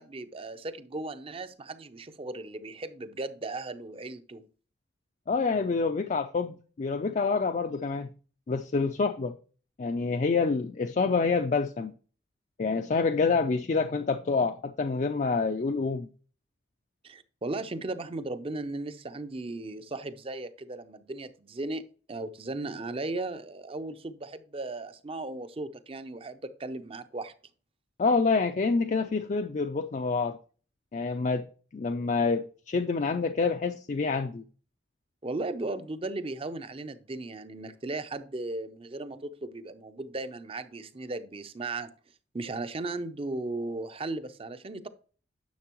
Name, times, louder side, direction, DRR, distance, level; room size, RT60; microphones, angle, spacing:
voice 1, 0.0-4.5 17.0-27.3 35.2-41.9 42.3-44.9, right 2 dB, 30° right, 0.5 m, -36 dB
voice 2, 5.3-8.1 8.5-9.4 9.8-11.9 12.6-16.1 28.0-30.4 30.9-31.5 31.7-34.4, left 4 dB, 40° left, 0.4 m, -27 dB
10.5 x 6.7 x 3.0 m
head